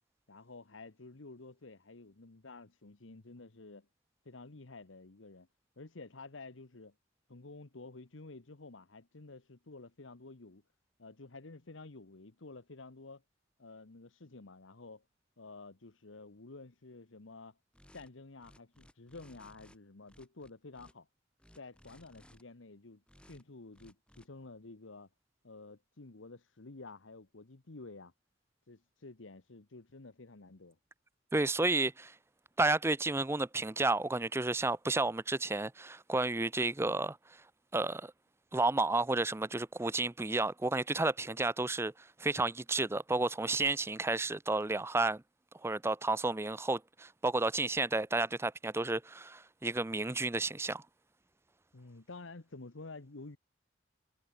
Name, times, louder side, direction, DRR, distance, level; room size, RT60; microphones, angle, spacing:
voice 1, 0.3-3.9 4.2-5.5 5.8-6.9 7.3-10.6 11.0-13.2 13.6-15.0 15.4-17.6 17.9-21.1 21.6-25.1 25.4-28.1 28.7-30.8 51.7-53.4, left 3 dB, 80° left, 1.3 m, -51 dB
sound 1, 17.7-18.1 18.4-19.8 20.1-20.9 21.4-22.4 23.1-23.4 23.7-24.3, equal, 5° left, 2.7 m, -60 dB
voice 2, 31.3-32.1 32.6-37.2 37.7-38.1 38.5-41.9 42.2-45.2 45.6-50.8, right 2 dB, 15° right, 0.5 m, -31 dB
head